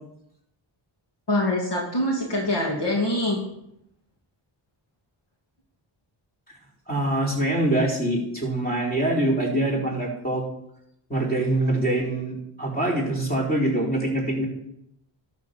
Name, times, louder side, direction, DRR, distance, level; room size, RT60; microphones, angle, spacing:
voice 1, 1.3-3.4, left 1 dB, 55° left, -2 dB, 2.7 m, -24 dB
voice 2, 6.9-10.4 11.1-14.4, right 1 dB, 20° left, -3 dB, 4.8 m, -24 dB
12.0 x 6.9 x 6.9 m, 0.78 s
cardioid pair, 65°, 48 cm